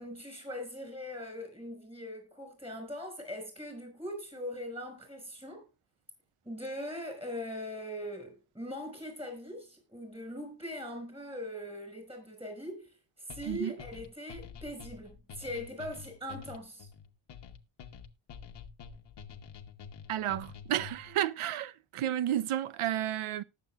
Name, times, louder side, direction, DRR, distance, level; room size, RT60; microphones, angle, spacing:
voice 1, 0.0-5.7 6.4-16.9, left 1 dB, 10° right, 5.9 m, -41 dB
sound 1, 13.3-21.2, left 6 dB, 55° left, 1.2 m, -48 dB
voice 2, 20.1-23.4, right 11 dB, 80° right, 0.8 m, -32 dB
19.0 x 7.1 x 2.4 m
wide cardioid pair, 125°, 49 cm